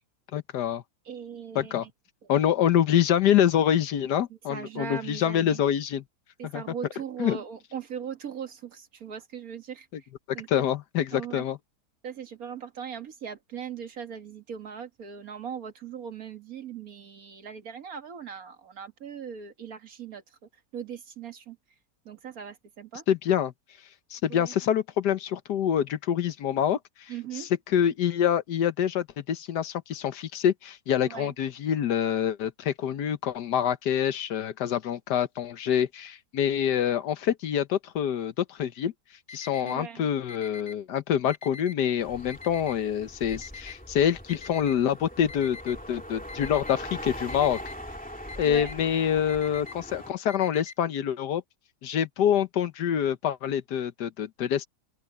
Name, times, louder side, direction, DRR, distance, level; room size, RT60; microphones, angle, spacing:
voice 1, 0.3-0.8 1.5-1.8 2.3-6.0 6.5-6.6 7.2-7.4 10.3-11.6 23.1-23.5 24.1-27.1 27.4-38.9 39.3-47.6 48.4-51.4 51.8-54.7, left 9 dB, 85° left, 1.5 m, -26 dB
voice 2, 1.1-1.9 2.2-2.3 4.5-5.6 6.4-10.1 10.3-10.6 11.1-11.5 12.0-20.4 20.7-21.6 22.1-23.0 24.3-24.5 27.1-27.5 31.0-31.3 39.6-40.1 48.4-48.8, right 7 dB, 60° right, 2.0 m, -39 dB
Alarm, 39.3-39.7 40.3-40.7 41.3-41.7 42.3-42.7 43.3-43.7 44.3-44.7 45.3-45.7 46.3-46.7 47.3-47.7 48.3-48.7 49.3-49.7 50.3-50.7, left 5 dB, 40° left, 2.1 m, -42 dB
sound 1, 42.0-50.1, equal, 5° left, 2.3 m, -41 dB
open air
omnidirectional pair, 1.8 m